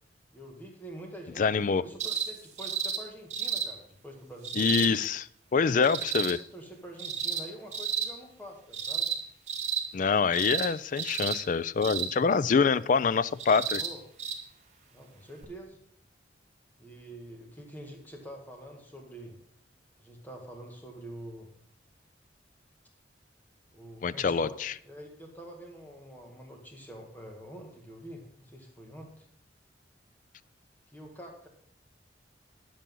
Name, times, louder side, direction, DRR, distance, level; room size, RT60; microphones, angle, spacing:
voice 1, 0.3-1.5 1.8-5.1 5.8-6.1 6.5-9.1 13.7-14.0 14.9-15.8 16.8-19.4 20.0-21.5 23.7-24.6 24.8-29.3 30.9-31.5, right 1 dB, 10° left, 1 dB, 1.7 m, -46 dB
voice 2, 1.4-1.8 4.6-5.2 5.5-6.4 9.9-13.8 24.0-24.7, left 5 dB, 45° left, 17 dB, 0.3 m, -25 dB
sound 1, 2.0-2.3 2.6-3.0 3.3-3.7 4.4-4.9 5.8-6.3 7.0-7.4 7.7-8.1 8.7-9.2 9.5-9.8 10.3-10.7 11.0-11.4 11.8-12.1 13.4-13.9 14.2-14.4 15.4-15.5, right 7 dB, 40° right, 1.7 m, -31 dB
10.5 x 8.4 x 5.5 m, 0.64 s
head